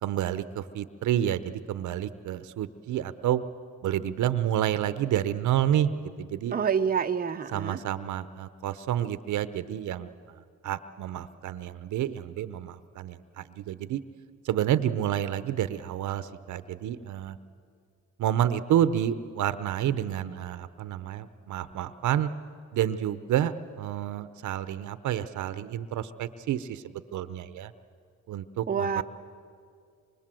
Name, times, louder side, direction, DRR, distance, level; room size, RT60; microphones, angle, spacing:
voice 1, 0.0-3.4 3.8-6.5 7.5-10.1 10.6-14.0 14.4-17.4 18.2-22.3 22.7-27.7 28.3-29.0, right 11 dB, 75° right, 13 dB, 1.0 m, -29 dB
voice 2, 6.5-7.8 28.7-29.0, right 7 dB, 30° right, 6 dB, 0.9 m, -27 dB
25.5 x 24.5 x 7.7 m, 2.3 s
cardioid pair, 90°, 30 cm